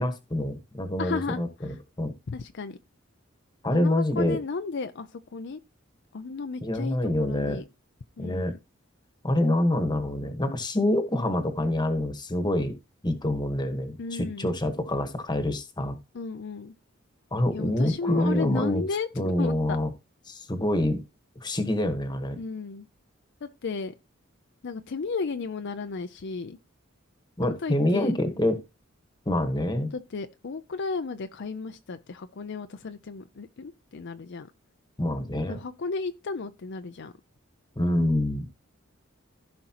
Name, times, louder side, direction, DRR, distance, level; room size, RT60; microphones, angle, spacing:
voice 1, 0.0-2.1 3.6-4.4 6.6-7.6 8.2-8.6 9.2-12.7 13.0-16.0 17.3-18.8 19.2-19.9 20.3-21.0 21.4-22.4 27.4-28.6 29.3-29.9 35.0-35.6 37.8-38.4, left 1 dB, 20° left, 1.3 m, -26 dB
voice 2, 1.0-1.8 2.3-2.8 3.7-5.6 6.1-7.6 8.2-8.6 14.0-14.5 16.1-16.7 17.5-19.8 22.4-22.9 23.4-23.9 24.6-26.6 27.6-28.1 29.9-34.5 35.5-37.1, left 4 dB, 60° left, 0.5 m, -34 dB
15.5 x 5.3 x 2.9 m
head